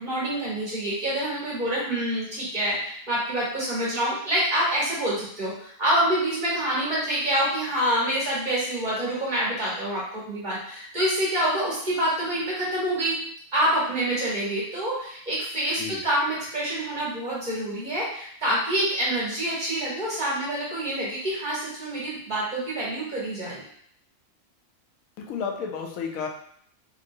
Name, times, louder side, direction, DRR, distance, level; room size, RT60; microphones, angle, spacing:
voice 1, 0.0-13.1 13.5-23.6, right 1 dB, 35° right, -7 dB, 1.3 m, -26 dB
voice 2, 25.2-26.3, left 6 dB, 90° left, 1 dB, 1.0 m, -32 dB
3.0 x 2.8 x 2.6 m, 0.63 s
omnidirectional pair, 1.4 m